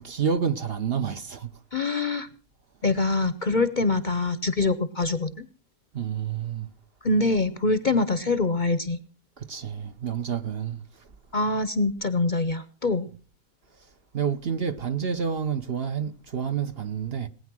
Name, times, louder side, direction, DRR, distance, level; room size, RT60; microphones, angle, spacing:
voice 1, 0.0-1.6 5.9-6.7 9.4-11.1 14.1-17.3, right 7 dB, 50° right, 1.0 m, -29 dB
voice 2, 1.7-2.3 2.8-5.5 7.0-9.0 11.3-13.1, left 3 dB, 40° left, 0.8 m, -24 dB
19.0 x 9.6 x 6.1 m
omnidirectional pair, 1.5 m